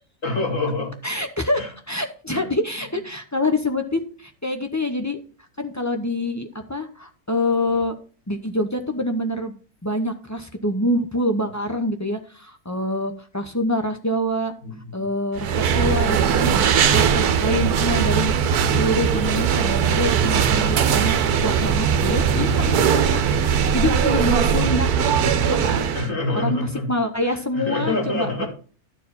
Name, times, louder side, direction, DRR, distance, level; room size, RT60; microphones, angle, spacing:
voice 1, 0.2-1.0 1.5-1.7 2.3-2.4 14.6-15.1 22.3-22.8 25.9-26.9 27.3-28.5, left 2 dB, 55° left, 1 dB, 2.8 m, -27 dB
voice 2, 1.0-5.2 5.6-8.0 8.3-9.5 9.8-14.5 14.9-16.6 16.9-24.9 25.5-25.6 26.3-26.6 26.9-28.5, left 1 dB, 20° left, 5 dB, 0.5 m, -26 dB
sound 1, 15.4-26.1, right 7 dB, 80° right, 1.3 m, -20 dB
11.5 x 4.6 x 5.4 m, 0.40 s
omnidirectional pair, 1.6 m